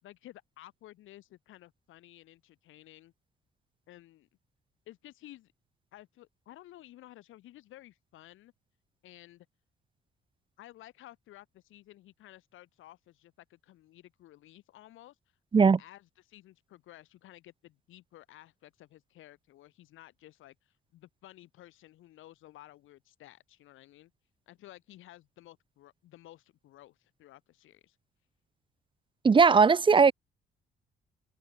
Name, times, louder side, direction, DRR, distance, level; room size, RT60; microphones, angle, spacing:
voice 1, 0.0-3.1 3.9-4.3 4.9-5.5 5.9-8.5 9.0-9.5 10.6-15.2 15.6-24.1 24.5-28.0, left 15 dB, 85° left, 5.1 m, -54 dB
voice 2, 29.2-30.1, right 5 dB, 25° right, 0.5 m, -19 dB
cardioid pair, 90°, 20 cm